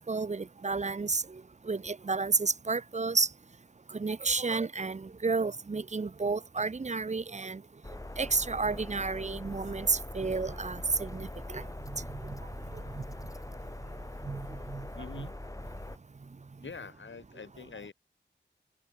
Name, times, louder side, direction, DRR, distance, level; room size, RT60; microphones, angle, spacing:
voice 1, 0.0-3.3 3.9-7.6 8.2-12.4 12.9-13.0 14.2-14.9 15.1-15.3, right 4 dB, 35° right, 0.8 m, -31 dB
sound 1, 7.8-16.0, left 1 dB, 15° left, 1.8 m, -42 dB
voice 2, 15.0-15.4 16.6-17.9, left 5 dB, 75° left, 7.3 m, -45 dB
cardioid pair, 50°, 20 cm